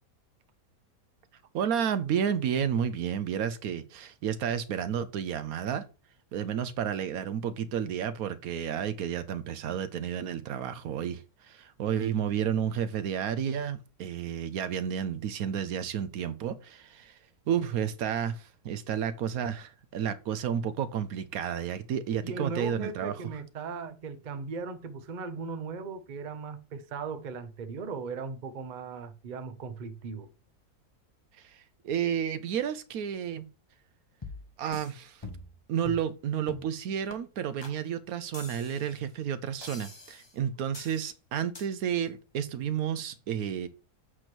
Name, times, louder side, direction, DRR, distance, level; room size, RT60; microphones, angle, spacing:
voice 1, 1.5-5.8 6.3-17.2 17.5-23.1 31.4-33.4 34.6-35.2 35.7-43.7, right 8 dB, 70° right, 1.0 m, -31 dB
voice 2, 22.2-30.3, right 4 dB, 55° right, 0.5 m, -38 dB
sound 1, 34.2-34.9 35.2-35.6 35.8-36.1 36.5-36.7 37.1-37.2 37.6-37.8 38.3-39.0 39.6-40.3 40.7-41.0 41.5-41.7, left 2 dB, 30° left, 0.5 m, -43 dB
7.9 x 3.0 x 5.9 m
omnidirectional pair, 1.7 m